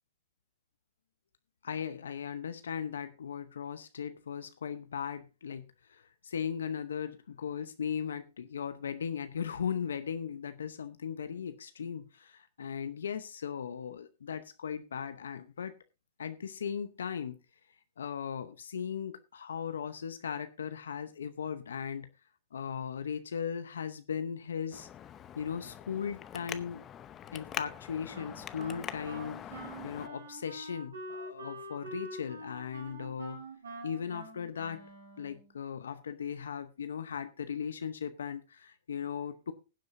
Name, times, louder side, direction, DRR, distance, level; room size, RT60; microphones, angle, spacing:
voice 1, 1.6-15.8 16.2-17.4 18.0-22.1 22.5-24.9 25.4-26.8 27.3-33.4 33.8-34.9 35.2-39.5, left 7 dB, 85° left, 0.8 m, -38 dB
Traffic noise roadway noise, 24.7-30.1, left 10 dB, 30° left, 0.7 m, -44 dB
Wind instrument woodwind instrument, 28.1-35.5, right 1 dB, 85° right, 4.2 m, -46 dB
20.5 x 7.7 x 2.6 m
hypercardioid pair, 115°, 0 cm